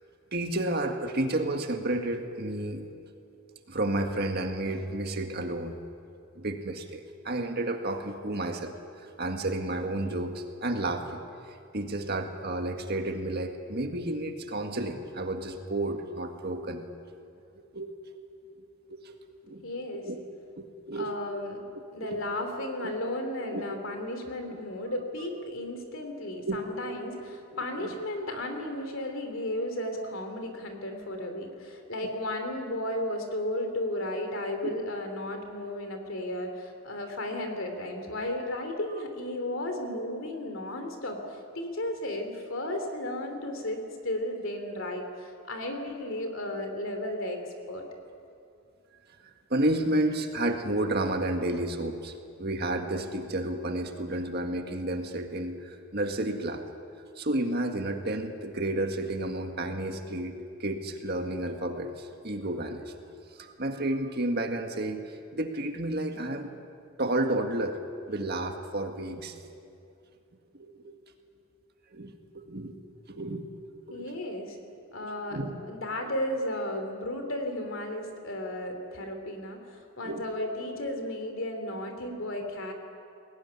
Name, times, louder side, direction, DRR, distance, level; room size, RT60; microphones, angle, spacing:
voice 1, 0.3-2.8 3.7-5.8 6.3-11.2 11.5-16.8 17.5-17.9 18.9-19.2 19.5-19.6 19.9-20.3 20.6-21.1 22.0-22.2 22.8-22.9 23.5-23.8 24.5-24.6 26.5-26.6 27.6-28.0 34.6-34.8 49.2-52.1 52.4-56.6 57.1-62.9 63.4-66.5 67.0-67.8 68.1-69.4 70.5-70.9 71.9-72.8 73.1-73.4 73.9-74.1 75.0-75.6 76.7-76.8 80.0-80.2, right 1 dB, 45° right, 4 dB, 1.8 m, -31 dB
voice 2, 19.6-20.1 21.0-21.6 21.9-47.4 47.7-47.8 73.9-74.6 74.9-82.7, left 1 dB, 65° left, 5 dB, 3.1 m, -34 dB
21.5 x 17.5 x 9.7 m, 2.5 s
head